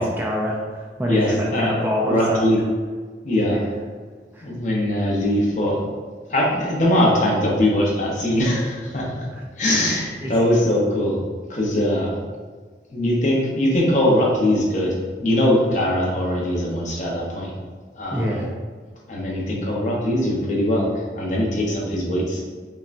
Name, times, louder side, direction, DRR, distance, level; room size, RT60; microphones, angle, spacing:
voice 1, 0.0-2.6 3.4-3.7 4.3-4.5 9.3-9.4 10.2-10.3 18.1-18.5, equal, 10° right, -3 dB, 0.3 m, -26 dB
voice 2, 1.0-1.8 2.0-2.6 3.2-3.6 4.4-5.8 6.3-9.3 9.6-11.2 11.5-12.2 12.9-17.5 17.9-18.5 19.1-22.4, left 1 dB, 40° left, -3 dB, 0.8 m, -21 dB
5.4 x 2.2 x 2.5 m, 1.5 s
head